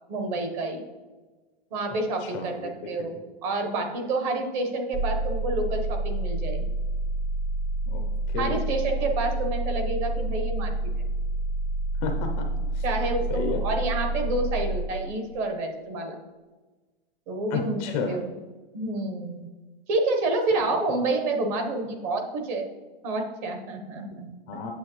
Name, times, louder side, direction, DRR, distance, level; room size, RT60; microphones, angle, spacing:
voice 1, 0.1-0.8 1.7-6.7 8.4-10.8 12.8-16.2 17.3-17.8 18.1-18.2 18.7-19.5 19.9-22.7 23.0-24.3, right 2 dB, 35° right, 4 dB, 1.1 m, -28 dB
voice 2, 2.2-3.1 7.9-8.6 12.0-12.5 12.7-12.8 13.3-13.6 17.5-18.2 20.6-20.7 24.5-24.7, left 5 dB, 20° left, 4 dB, 0.5 m, -32 dB
sound 1, 4.9-14.9, right 2 dB, 20° right, 0.7 m, -28 dB
8.5 x 7.3 x 3.1 m, 1.3 s
hypercardioid pair, 155°, 30 cm